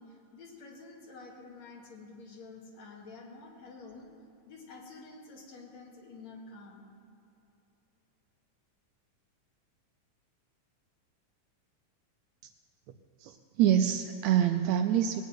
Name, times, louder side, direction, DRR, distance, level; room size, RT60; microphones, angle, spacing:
voice 1, 0.0-4.1 4.4-6.8, left 3 dB, 60° left, -2 dB, 3.2 m, -49 dB
voice 2, 13.2-15.2, right 10 dB, 80° right, 7 dB, 1.7 m, -26 dB
19.5 x 6.9 x 9.1 m, 2.8 s
omnidirectional pair, 3.6 m